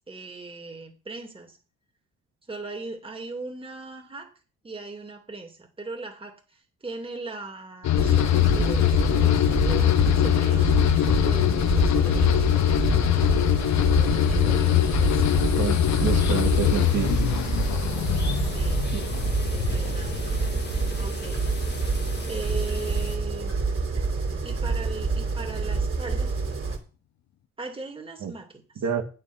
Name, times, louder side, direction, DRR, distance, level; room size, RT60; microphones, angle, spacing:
voice 1, 0.1-1.6 2.5-4.3 4.6-12.9 14.0-15.3 18.5-18.8 19.5-20.2 21.0-21.4 22.3-23.5 24.4-26.3 27.6-28.8, right 3 dB, 20° right, 3 dB, 2.5 m, -39 dB
sound 1, 7.8-21.2 21.5-22.1, left 13 dB, 65° left, 0.8 m, -23 dB
sound 2, 7.9-26.8, right 4 dB, 45° right, 2.8 m, -27 dB
sound 3, 13.1-23.2, left 4 dB, 35° left, 1.8 m, -41 dB
voice 2, 15.4-17.1 18.9-19.1 28.2-28.3 28.8-29.0, right 8 dB, 65° right, 3 dB, 2.0 m, -29 dB
8.9 x 7.8 x 6.1 m, 0.36 s
cardioid pair, 90°, 30 cm